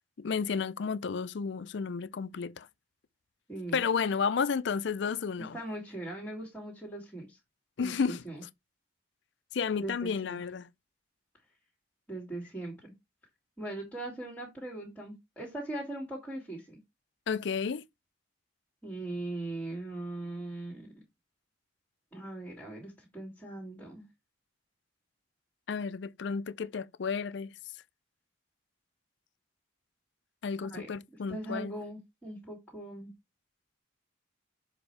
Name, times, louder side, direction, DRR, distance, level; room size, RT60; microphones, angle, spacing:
voice 1, 0.2-2.7 3.7-5.6 7.8-8.2 9.5-10.7 17.3-17.8 25.7-27.5 30.4-31.7, left 5 dB, 60° left, 0.4 m, -32 dB
voice 2, 3.5-3.8 5.5-7.4 7.8-8.4 9.8-10.4 12.1-12.9 13.6-16.8 18.8-20.9 22.1-24.1 30.6-30.9 31.3-33.1, right 2 dB, 5° left, 2.1 m, -40 dB
7.1 x 4.4 x 3.2 m
head